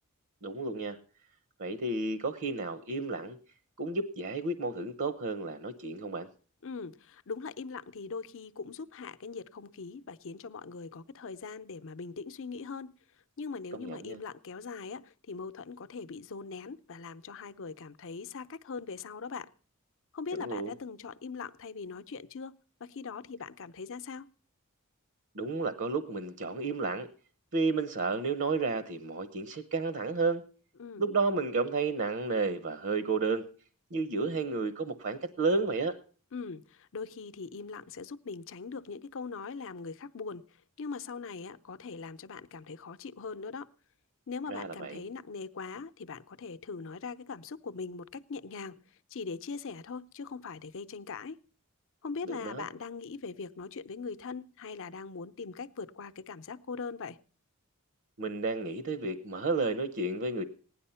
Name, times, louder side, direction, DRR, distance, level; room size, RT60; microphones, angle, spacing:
voice 1, 0.4-1.0 1.6-3.4 3.8-6.3 13.7-14.2 20.3-20.7 25.3-27.1 27.5-30.4 31.0-33.4 33.9-36.0 44.5-45.0 52.2-52.6 58.2-60.4, right 3 dB, 60° right, 0.9 m, -32 dB
voice 2, 6.6-12.9 13.4-19.5 20.1-24.3 30.8-31.0 36.3-40.4 40.8-43.7 44.3-48.7 49.1-51.4 52.0-57.2, left 4 dB, 65° left, 0.7 m, -41 dB
16.0 x 10.5 x 5.6 m
head